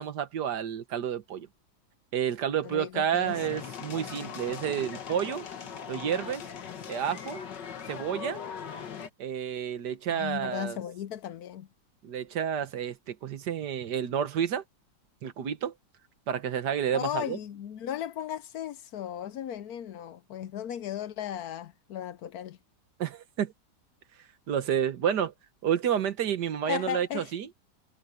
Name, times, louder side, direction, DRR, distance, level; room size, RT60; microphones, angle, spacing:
voice 1, 0.0-1.5 2.1-5.5 5.9-6.4 6.9-7.4 7.9-8.4 9.2-10.8 12.0-14.6 15.2-15.7 16.3-17.4 23.0-23.5 24.5-25.3 25.6-27.5, right 8 dB, 75° right, 1.7 m, -30 dB
voice 2, 2.6-3.4 10.1-11.7 16.9-22.6 26.7-27.3, left 10 dB, 70° left, 1.1 m, -36 dB
sound 1, 3.2-9.1, left 7 dB, 85° left, 2.1 m, -40 dB
omnidirectional pair, 1.8 m